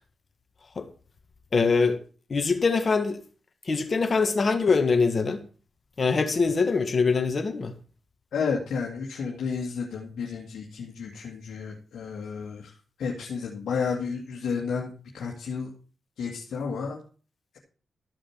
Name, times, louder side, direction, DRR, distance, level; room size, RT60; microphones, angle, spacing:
voice 1, 1.5-2.0 2.3-3.2 3.7-5.4 6.0-7.7, left 4 dB, 50° left, 1.7 m, -23 dB
voice 2, 8.3-12.7 13.0-15.7 16.2-17.0, left 5 dB, 85° left, 2.0 m, -31 dB
14.0 x 5.1 x 7.2 m
cardioid pair, 60°, 0 cm